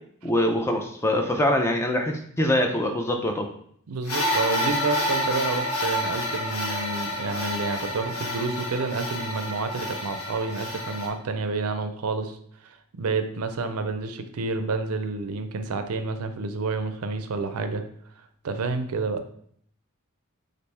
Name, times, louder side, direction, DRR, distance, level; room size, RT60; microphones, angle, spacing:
voice 1, 0.2-3.5, left 1 dB, 10° left, 3 dB, 0.4 m, -24 dB
voice 2, 3.9-12.4 12.6-17.8 18.4-19.2, right 3 dB, 80° right, 8 dB, 0.5 m, -29 dB
sound 1, 4.1-11.1, left 1 dB, 85° left, 1.1 m, -29 dB
4.3 x 2.5 x 3.3 m, 0.64 s
head